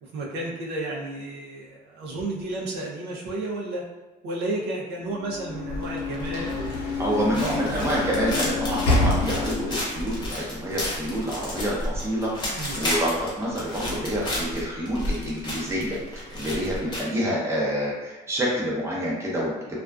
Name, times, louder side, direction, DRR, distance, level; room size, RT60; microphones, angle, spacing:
voice 1, 0.0-3.8 4.2-7.0 7.3-7.9 12.4-12.8, right 2 dB, 85° right, -3 dB, 0.6 m, -32 dB
Sliding door / Slam, 5.2-9.9, left 3 dB, 80° left, 0.7 m, -27 dB
sound 1, 5.7-17.0, left 1 dB, 25° left, 0.8 m, -32 dB
voice 2, 7.0-19.6, equal, 15° right, -5 dB, 0.8 m, -27 dB
2.4 x 2.3 x 2.3 m, 1.1 s
cardioid pair, 110°, 17 cm